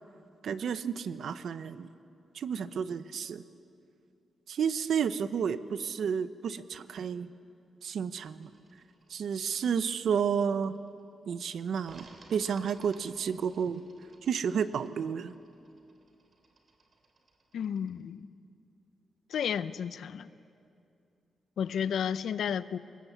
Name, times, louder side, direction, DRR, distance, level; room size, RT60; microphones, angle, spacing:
voice 1, 0.4-1.9 2.3-3.4 4.5-7.3 7.8-8.5 9.1-10.7 11.3-13.8 14.2-15.3, right 7 dB, 60° right, 12 dB, 0.8 m, -31 dB
sound 1, 8.3-11.0 11.8-18.0, right 3 dB, 35° right, 3.1 m, -59 dB
voice 2, 17.5-18.3 19.3-20.3 21.6-22.8, left 8 dB, 70° left, 14 dB, 0.7 m, -32 dB
24.5 x 20.5 x 8.3 m, 2.5 s
wide cardioid pair, 165°, 0 cm